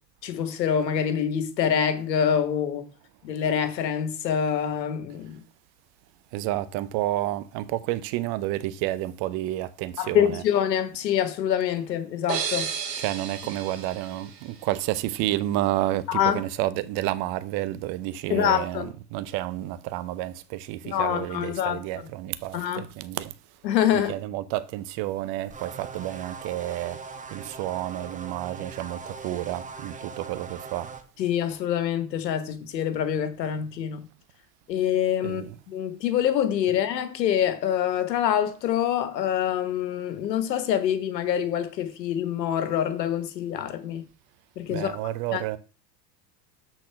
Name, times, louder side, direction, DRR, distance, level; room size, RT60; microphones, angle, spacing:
voice 1, 0.2-2.9 3.2-5.4 10.0-12.7 16.1-16.4 18.3-18.9 20.8-21.8 22.5-22.8 23.6-24.1 31.2-34.0 34.7-44.0 44.6-45.0 45.3-45.4, left 9 dB, 90° left, 1.5 m, -25 dB
voice 2, 6.3-10.4 13.0-23.3 23.9-27.0 27.3-30.9 35.2-35.6 44.7-45.6, right 15 dB, 50° right, 0.8 m, -30 dB
sound 1, 12.3-15.1, right 8 dB, 85° right, 2.3 m, -33 dB
sound 2, 25.5-31.0, right 5 dB, 15° right, 0.9 m, -40 dB
6.5 x 4.2 x 5.8 m
hypercardioid pair, 100°, 49 cm